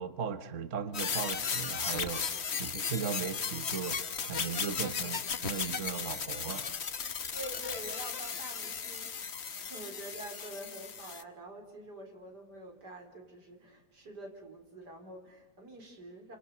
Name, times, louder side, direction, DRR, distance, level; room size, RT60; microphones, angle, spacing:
voice 1, 0.0-6.7, right 7 dB, 50° right, 11 dB, 1.5 m, -37 dB
sound 1, 0.9-11.2, left 6 dB, 45° left, 1.3 m, -36 dB
voice 2, 7.3-9.1 9.5-16.4, right 1 dB, 90° right, 3 dB, 4.7 m, -46 dB
29.0 x 27.0 x 6.8 m, 1.1 s
omnidirectional pair, 1.7 m